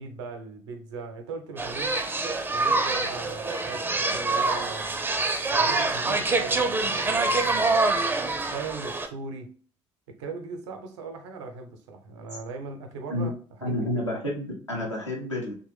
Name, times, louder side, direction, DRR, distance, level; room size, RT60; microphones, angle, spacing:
voice 1, 0.0-2.0 2.5-5.0 5.5-7.9 8.5-9.6 10.1-13.3 13.6-13.9, right 4 dB, 70° right, 0.6 m, -39 dB
sound 1, 1.6-9.1, right 3 dB, 15° right, 0.4 m, -25 dB
voice 2, 13.6-15.5, left 1 dB, 90° left, 0.7 m, -29 dB
3.0 x 2.2 x 3.2 m
figure-of-eight pair, 50°, 15 cm